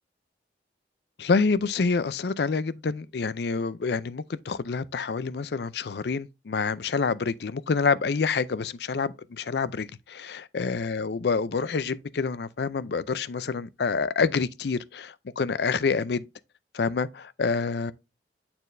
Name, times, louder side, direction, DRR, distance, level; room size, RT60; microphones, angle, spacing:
voice 1, 1.2-16.3 16.7-17.9, left 4 dB, 65° left, 0.5 m, -27 dB
9.1 x 4.3 x 2.6 m
head